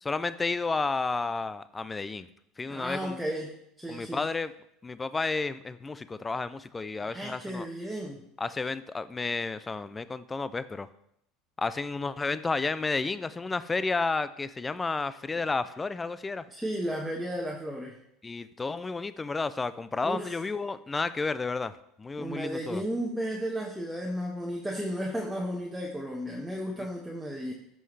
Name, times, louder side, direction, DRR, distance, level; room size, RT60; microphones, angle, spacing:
voice 1, 0.0-2.3 2.6-3.2 3.9-4.5 4.8-7.7 8.4-10.9 11.6-16.5 18.2-21.7 22.0-22.8, left 3 dB, 20° left, 15 dB, 0.4 m, -31 dB
voice 2, 2.7-4.3 7.0-8.2 16.5-17.9 20.0-20.4 22.2-27.5, equal, 5° right, -2 dB, 1.2 m, -34 dB
12.0 x 5.6 x 3.3 m, 0.74 s
supercardioid pair, 95°, 0 cm